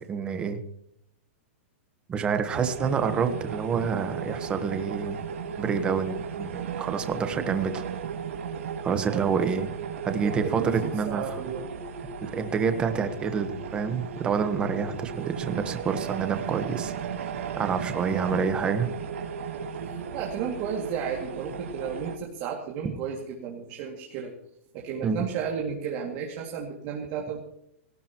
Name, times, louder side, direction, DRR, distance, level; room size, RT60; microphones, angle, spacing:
voice 1, 0.1-0.6 2.1-5.2 5.6-7.8 8.8-9.7 10.0-11.3 12.2-16.9 17.2-18.9 25.0-25.2, right 6 dB, 15° right, 8 dB, 1.1 m, -28 dB
sound 1, 2.5-22.2, right 6 dB, 85° right, 3.1 m, -35 dB
voice 2, 9.1-9.7 10.2-11.7 19.7-24.3 24.7-27.4, right 7 dB, 30° right, 0 dB, 2.3 m, -33 dB
18.5 x 17.5 x 3.0 m, 0.76 s
supercardioid pair, 170°, 7 cm